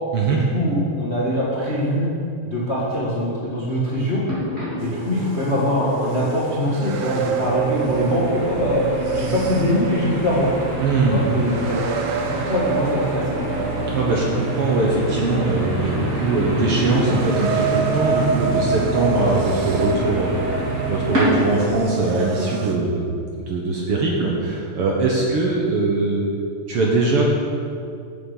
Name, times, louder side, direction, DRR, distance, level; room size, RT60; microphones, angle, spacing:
voice 1, 0.3-2.1 2.4-4.2 4.8-8.8 9.1-10.5 11.1-13.7, equal, 35° left, -6 dB, 1.1 m, -23 dB
sound 1, 4.2-21.8, right 1 dB, 25° right, 3.0 m, -28 dB
sound 2, 4.8-22.8, right 5 dB, 80° right, 1.3 m, -28 dB
voice 2, 10.8-11.2 13.9-23.0 23.4-26.2 26.7-27.2, right 3 dB, 60° right, -2 dB, 1.7 m, -21 dB
9.2 x 7.2 x 6.4 m, 2.4 s
omnidirectional pair, 3.5 m